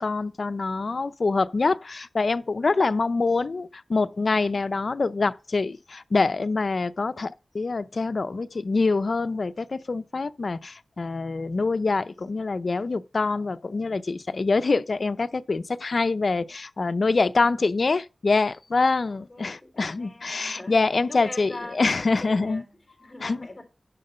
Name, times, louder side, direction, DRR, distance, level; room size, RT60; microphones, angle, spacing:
voice 1, 0.0-22.6 23.2-23.5, left 3 dB, 55° left, 0.6 m, -25 dB
voice 2, 19.1-23.6, left 2 dB, 25° left, 4.1 m, -43 dB
11.0 x 3.8 x 6.7 m
wide cardioid pair, 100°, 0 cm